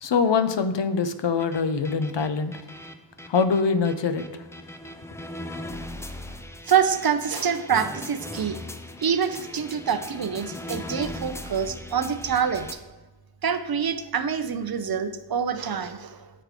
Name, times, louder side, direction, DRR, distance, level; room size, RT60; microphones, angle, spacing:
voice 1, 0.0-2.5 3.3-4.2, left 5 dB, 70° left, 11 dB, 0.5 m, -23 dB
sound 1, 1.4-12.7, left 1 dB, 5° left, 0.3 m, -39 dB
voice 2, 6.7-8.6 9.0-12.7 13.4-16.3, right 7 dB, 55° right, 10 dB, 0.5 m, -26 dB
7.7 x 3.3 x 4.8 m, 1.2 s
wide cardioid pair, 50°, 45 cm